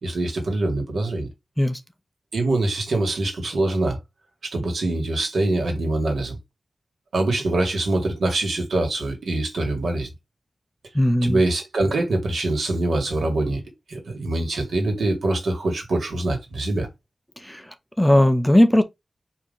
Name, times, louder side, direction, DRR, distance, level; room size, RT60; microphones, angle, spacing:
voice 1, 0.0-1.3 2.3-4.0 4.4-6.4 7.1-10.1 11.2-13.6 13.9-16.9, right 2 dB, 85° right, 1.9 m, -24 dB
voice 2, 10.9-11.4 17.4-18.8, left 1 dB, 5° left, 0.6 m, -18 dB
4.8 x 2.9 x 3.9 m
wide cardioid pair, 130°, 0 cm